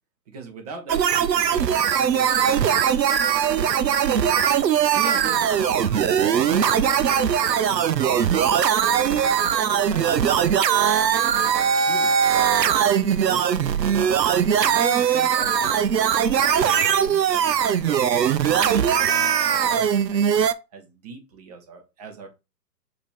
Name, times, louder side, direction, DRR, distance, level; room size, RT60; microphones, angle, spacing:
voice 1, 0.3-4.4 4.9-7.1 7.5-8.5 8.8-9.2 9.5-14.1 14.5-18.3 18.6-20.4 20.7-22.3, right 4 dB, 25° right, 3 dB, 0.9 m, -40 dB
sound 1, 0.9-20.5, right 8 dB, 80° right, 0.6 m, -20 dB
5.2 x 2.8 x 3.3 m, 0.26 s
figure-of-eight pair, 130°, 50 cm